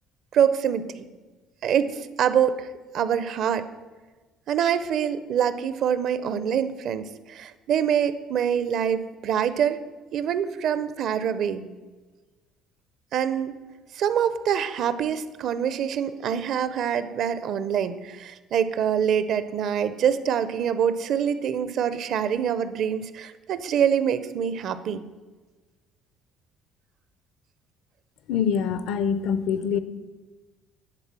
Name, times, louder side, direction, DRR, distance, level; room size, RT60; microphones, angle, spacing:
voice 1, 0.3-1.1 1.6-2.7 2.9-3.7 4.5-9.8 10.1-11.6 13.1-13.5 13.9-25.0, right 8 dB, 50° right, 13 dB, 0.5 m, -25 dB
voice 2, 28.3-29.8, left 7 dB, 65° left, 13 dB, 0.5 m, -24 dB
10.5 x 3.9 x 7.3 m, 1.3 s
cardioid pair, 145°, 0 cm